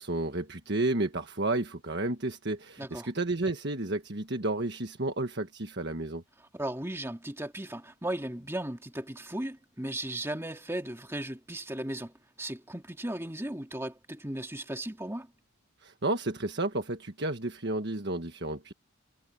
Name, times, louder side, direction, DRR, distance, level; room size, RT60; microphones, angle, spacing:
voice 1, 0.0-6.2 15.8-18.7, right 2 dB, 50° right, 1.5 m, -31 dB
voice 2, 6.5-15.3, right 1 dB, 10° right, 2.2 m, -36 dB
head